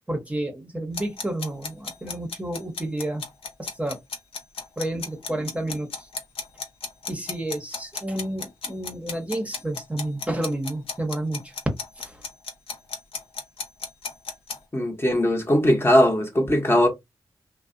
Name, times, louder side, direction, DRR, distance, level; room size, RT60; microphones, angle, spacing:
voice 1, 0.1-3.2 3.6-4.0 4.8-6.1 7.1-11.5 12.0-12.2, right 1 dB, 15° right, 0.8 m, -30 dB
sound 1, 0.9-14.6, left 4 dB, 75° left, 0.6 m, -34 dB
voice 2, 14.7-16.9, equal, 25° left, 0.8 m, -19 dB
2.5 x 2.0 x 2.5 m
cardioid pair, 45°, 10 cm